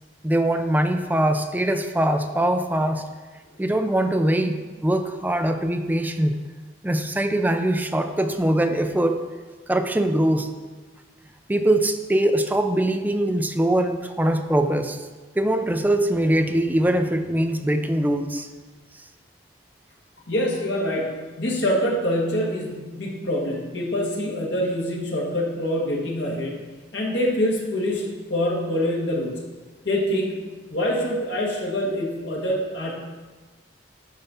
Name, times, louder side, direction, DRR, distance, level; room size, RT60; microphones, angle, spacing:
voice 1, 0.2-3.0 3.6-6.4 6.8-9.2 9.7-10.5 11.5-15.0 15.4-18.5, right 1 dB, 10° right, 6 dB, 0.4 m, -22 dB
voice 2, 20.3-26.6 26.9-29.4 29.8-30.4 30.7-33.0, left 1 dB, 65° left, -3 dB, 1.6 m, -25 dB
8.8 x 4.2 x 5.7 m, 1.3 s
head